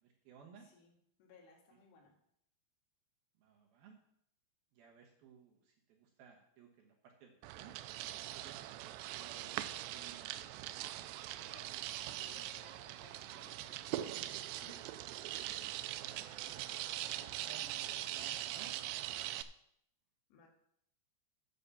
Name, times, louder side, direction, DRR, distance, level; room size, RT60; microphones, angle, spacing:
voice 1, 0.0-0.7 3.4-4.0 4.7-7.8 8.3-10.4 15.3-15.7 16.0-16.6 17.1-19.1, right 6 dB, 70° right, 0 dB, 2.5 m, -59 dB
voice 2, 0.6-2.2 11.4-11.7 12.1-14.8 20.3-20.5, left 4 dB, 80° left, 1 dB, 4.4 m, -62 dB
sound 1, 7.4-19.4, right 14 dB, 85° right, 2.4 m, -42 dB
8.9 x 6.7 x 6.9 m, 0.72 s
omnidirectional pair, 5.4 m